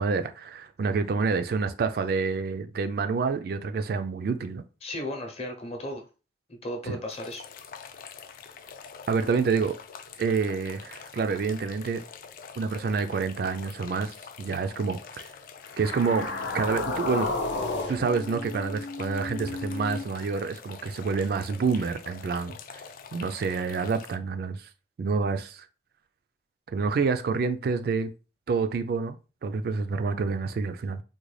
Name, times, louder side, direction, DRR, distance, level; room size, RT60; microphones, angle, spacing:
voice 1, 0.0-4.6 6.8-7.0 9.1-9.7 10.2-12.0 12.6-15.3 15.8-16.3 16.5-17.3 17.9-22.8 23.1-24.7 25.0-25.7 26.7-28.1 28.5-31.0, right 5 dB, 55° right, 0.3 m, -28 dB
voice 2, 4.8-6.0 6.5-7.5, left 1 dB, 35° left, 0.7 m, -35 dB
sound 1, 7.1-24.2, left 6 dB, 50° left, 0.3 m, -46 dB
sound 2, 15.7-20.0, left 3 dB, 85° left, 0.7 m, -32 dB
3.7 x 2.2 x 3.1 m
head